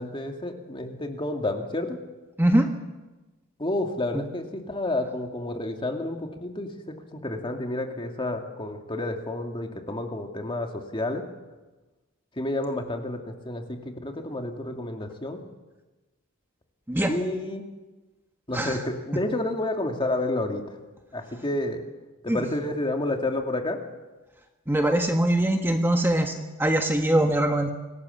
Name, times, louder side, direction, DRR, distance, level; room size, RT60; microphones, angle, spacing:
voice 1, 0.0-2.0 3.6-11.2 12.4-15.4 17.1-17.6 18.5-20.8 21.1-21.8 22.2-23.8, left 2 dB, 25° left, 3 dB, 2.3 m, -30 dB
voice 2, 24.7-26.3 26.6-27.7, right 1 dB, 10° right, 3 dB, 1.5 m, -22 dB
26.0 x 18.0 x 7.2 m, 1.1 s
head